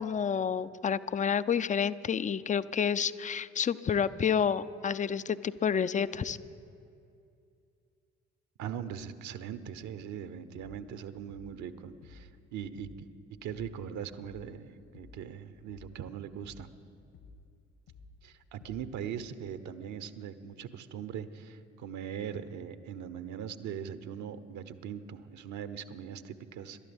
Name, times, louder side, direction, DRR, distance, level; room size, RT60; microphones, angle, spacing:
voice 1, 0.0-6.4, left 7 dB, 20° left, 15 dB, 0.5 m, -29 dB
voice 2, 8.6-13.1 13.4-16.7 18.2-26.8, right 8 dB, 55° right, 12 dB, 1.0 m, -40 dB
sound 1, 10.6-10.9 11.3-11.7 12.0-12.4 12.8-13.1 13.5-13.9 14.2-14.6 14.9-15.3 15.7-16.1 16.4-16.8 17.1-17.5 17.9-18.2 18.6-19.0, left 3 dB, 60° left, 1.5 m, -54 dB
27.0 x 12.5 x 3.5 m, 2.5 s
figure-of-eight pair, 45°, 34 cm